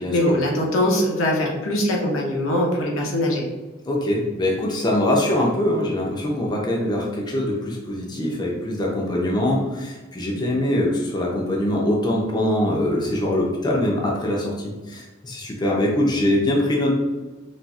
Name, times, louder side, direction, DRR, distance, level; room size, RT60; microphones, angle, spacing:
voice 1, 0.0-3.4, left 1 dB, 85° left, -1 dB, 0.8 m, -22 dB
voice 2, 3.9-16.9, left 1 dB, 20° left, -2 dB, 0.5 m, -23 dB
4.0 x 2.4 x 2.3 m, 1.2 s
head